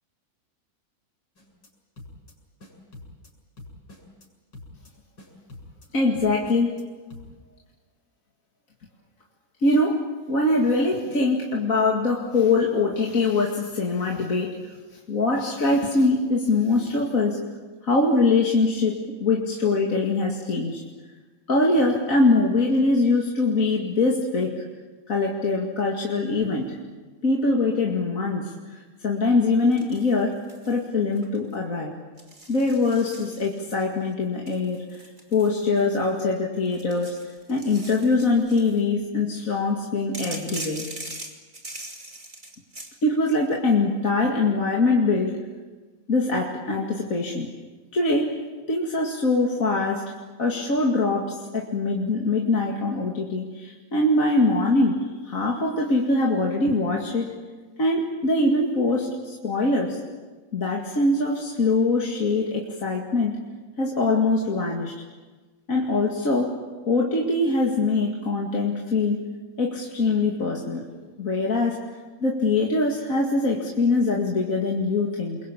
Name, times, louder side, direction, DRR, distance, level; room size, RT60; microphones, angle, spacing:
sound 1, 1.4-1.7 2.0-2.3 2.6-3.3 3.6-4.3 4.5-4.9 5.2-5.9 6.1-6.8 7.1-7.3, left 2 dB, 75° left, 7.2 m, -45 dB
voice 1, 5.9-6.8 9.6-14.7 15.1-17.4 17.8-20.8 21.5-24.6 25.1-26.8 27.2-28.5 29.0-30.4 30.7-31.9 32.5-35.0 35.3-37.2 37.5-40.9 43.0-45.4 46.1-47.5 47.9-48.4 48.7-50.0 50.4-57.3 57.8-60.0 60.5-63.4 63.8-64.9 65.7-66.6 66.9-69.3 69.6-70.8 71.2-71.8 72.2-75.4, left 3 dB, 45° left, -1 dB, 2.7 m, -23 dB
sound 2, 29.7-30.8 31.1-31.5 32.2-33.8 34.5-36.2 36.7-38.8 40.1-43.0, right 2 dB, 25° right, 2.8 m, -41 dB
28.5 x 22.5 x 8.5 m, 1.3 s
omnidirectional pair, 1.9 m